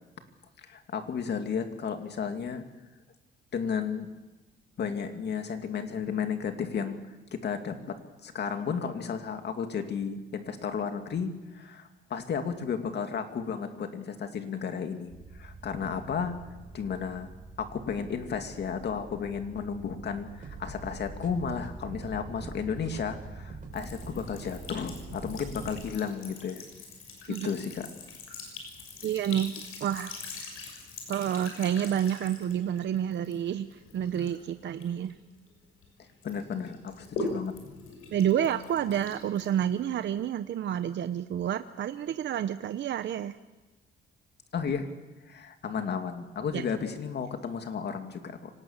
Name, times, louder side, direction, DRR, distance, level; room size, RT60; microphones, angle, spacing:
voice 1, 0.6-2.6 3.5-4.1 4.8-7.0 7.3-16.4 16.7-17.3 17.6-26.6 27.3-27.9 36.2-37.8 44.5-44.9 45.3-48.5, left 6 dB, 55° left, 6 dB, 2.5 m, -33 dB
sound 1, 15.1-25.8, right 3 dB, 40° right, 4.9 m, -44 dB
Sink (filling or washing) / Trickle dribble, 23.7-35.9 36.2-40.1, left 3 dB, 85° left, 6.4 m, -43 dB
voice 2, 29.0-30.2 31.1-35.1 37.2-37.3 38.1-43.4 46.5-46.6, right 10 dB, 60° right, 10 dB, 0.8 m, -29 dB
25.0 x 19.0 x 7.4 m, 1.2 s
cardioid pair, 120°, 21 cm